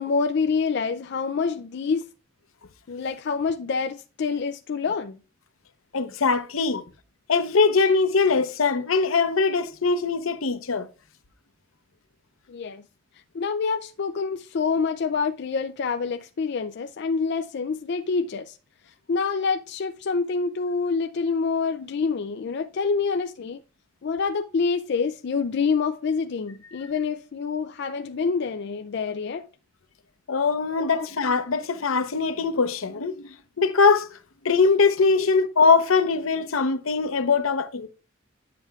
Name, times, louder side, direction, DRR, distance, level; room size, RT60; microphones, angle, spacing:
voice 1, 0.0-2.1 2.9-5.2 12.5-12.8 13.3-18.6 19.1-23.6 24.0-29.5 30.8-31.1 35.1-35.5, left 5 dB, 55° left, 0.4 m, -27 dB
voice 2, 5.9-6.8 7.3-10.9 26.7-26.8 30.3-34.1 34.4-37.9, left 4 dB, 85° left, 0.8 m, -22 dB
9.3 x 7.5 x 2.3 m
head